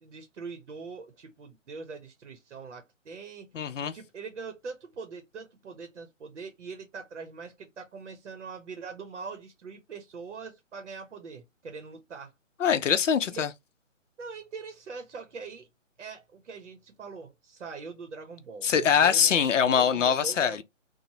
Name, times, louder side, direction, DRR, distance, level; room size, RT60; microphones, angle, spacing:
voice 1, 0.0-3.5 3.9-12.3 13.3-13.4 14.2-15.7 16.0-20.6, right 5 dB, 65° right, 0.7 m, -42 dB
voice 2, 3.5-3.9 12.6-13.5 18.6-20.6, left 7 dB, 70° left, 0.6 m, -23 dB
3.0 x 2.1 x 2.7 m
hypercardioid pair, 170°, 39 cm